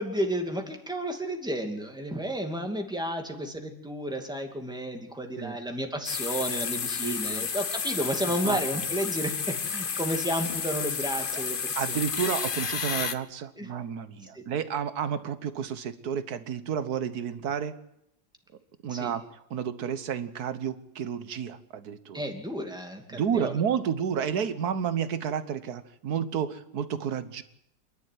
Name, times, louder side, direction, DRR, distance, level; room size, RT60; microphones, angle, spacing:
voice 1, 0.0-11.6 11.9-12.0 13.6-13.7 14.3-14.4 18.9-19.1 22.1-23.6, equal, 5° right, 3 dB, 2.5 m, -32 dB
sound 1, 6.0-13.1, left 6 dB, 40° left, 0.9 m, -31 dB
voice 2, 7.0-7.5 8.4-8.8 11.3-11.4 11.7-17.8 18.8-22.3 23.1-27.4, right 8 dB, 70° right, 13 dB, 1.6 m, -31 dB
27.0 x 11.5 x 9.5 m, 0.80 s
omnidirectional pair, 1.7 m